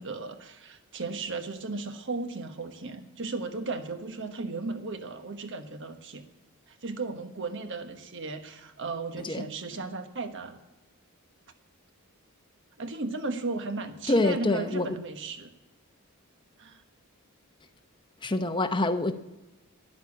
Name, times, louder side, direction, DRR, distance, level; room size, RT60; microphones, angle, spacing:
voice 1, 0.0-6.3 6.7-10.6 12.8-15.5 16.6-16.8, right 3 dB, 55° right, 1.2 m, -35 dB
voice 2, 14.1-15.0 18.2-19.1, left 2 dB, 20° left, 0.8 m, -26 dB
11.5 x 11.0 x 7.3 m
head